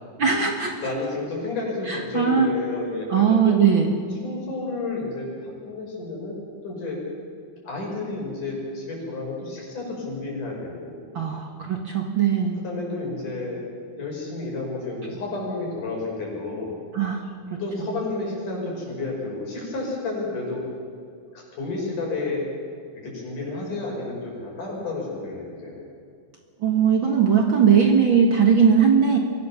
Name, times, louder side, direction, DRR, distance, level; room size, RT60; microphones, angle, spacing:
voice 1, 0.2-0.8 1.9-2.5 3.1-3.9 11.1-12.6 16.9-17.2 17.5-17.6 26.6-29.2, right 7 dB, 45° right, 3 dB, 1.9 m, -19 dB
voice 2, 0.8-3.6 4.2-6.4 6.6-7.0 7.6-11.0 12.6-13.6 14.0-16.7 17.6-20.7 21.3-22.5 22.9-25.8, left 3 dB, 75° left, -2 dB, 7.2 m, -31 dB
24.0 x 16.5 x 7.2 m, 2.3 s
omnidirectional pair, 3.6 m